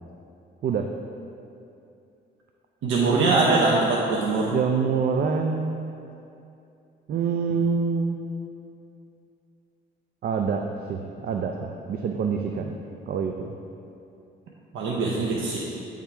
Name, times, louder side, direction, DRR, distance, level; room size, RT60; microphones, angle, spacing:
voice 1, 2.8-4.5 14.7-15.6, right 3 dB, 80° right, -3 dB, 0.8 m, -22 dB
voice 2, 4.3-5.8 7.1-8.2 10.2-12.8 13.1-13.6, right 5 dB, 50° right, 3 dB, 0.4 m, -26 dB
8.7 x 3.6 x 4.5 m, 2.6 s
cardioid pair, 90°, 20 cm